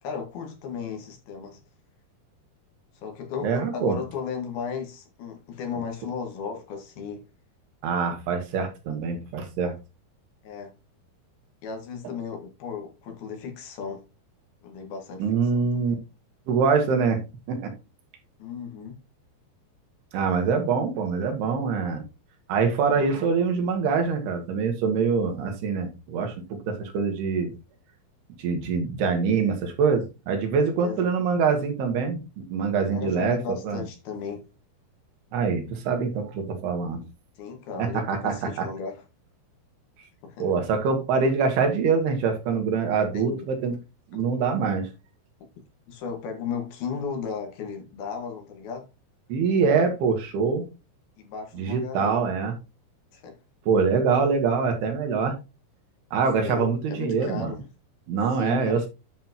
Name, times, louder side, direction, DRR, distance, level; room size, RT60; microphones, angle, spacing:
voice 1, 0.0-1.6 3.0-7.2 10.4-10.7 11.6-14.0 14.6-15.3 15.5-15.9 18.4-19.0 30.8-31.1 32.9-34.5 37.4-39.0 40.2-40.5 43.1-43.5 44.1-44.2 45.9-48.9 51.2-52.2 53.1-53.4 56.4-57.6 58.3-58.9, left 6 dB, 75° left, 3.5 m, -35 dB
voice 2, 3.4-4.0 7.8-9.8 15.2-16.0 16.5-17.2 17.5-17.7 20.1-22.0 22.5-27.5 28.4-33.4 33.6-33.8 35.3-37.0 37.8-38.7 40.4-43.7 44.1-44.9 49.3-50.7 51.5-52.5 53.7-55.3 56.1-57.6 58.1-58.9, right 5 dB, 90° right, 3.6 m, -24 dB
10.0 x 5.7 x 3.0 m
omnidirectional pair, 4.5 m